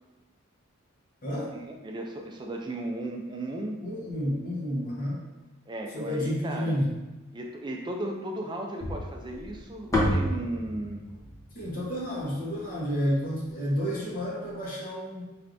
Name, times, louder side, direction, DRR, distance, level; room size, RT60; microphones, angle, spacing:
voice 1, 1.8-3.8 5.7-6.8 7.3-11.0, right 1 dB, 20° right, 2 dB, 0.3 m, -35 dB
voice 2, 3.8-5.2 5.9-6.9 11.5-15.2, equal, 40° left, -5 dB, 1.0 m, -30 dB
sound 1, 8.8-13.1, left 1 dB, 15° left, 0.7 m, -31 dB
4.6 x 3.3 x 2.5 m, 1.1 s
head